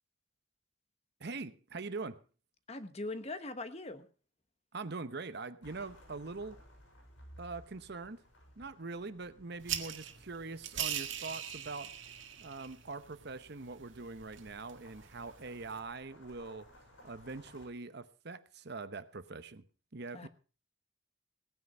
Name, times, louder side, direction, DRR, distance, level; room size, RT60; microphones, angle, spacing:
voice 1, 1.2-2.2 4.7-6.6 7.4-8.2 8.6-11.9 12.4-16.7 17.0-19.6 19.9-20.3, right 3 dB, 60° right, 12 dB, 0.9 m, -43 dB
voice 2, 2.7-4.1 20.1-20.3, left 2 dB, 35° left, 10 dB, 1.2 m, -41 dB
sound 1, 5.6-12.1 13.2-17.7, equal, 90° left, 7.8 m, -59 dB
sound 2, 9.6-15.8, right 10 dB, 85° right, 1.8 m, -42 dB
17.5 x 9.7 x 5.5 m, 0.37 s
head